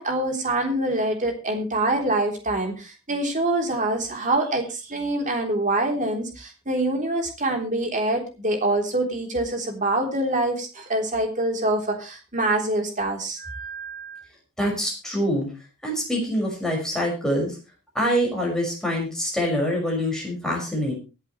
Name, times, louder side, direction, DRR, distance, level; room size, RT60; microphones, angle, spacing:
voice 1, 0.0-14.2, right 2 dB, 35° right, 3 dB, 3.5 m, -25 dB
voice 2, 14.6-15.5 15.8-17.5 17.9-20.9, equal, 5° left, -2 dB, 5.6 m, -25 dB
24.0 x 8.2 x 3.2 m, 0.30 s
head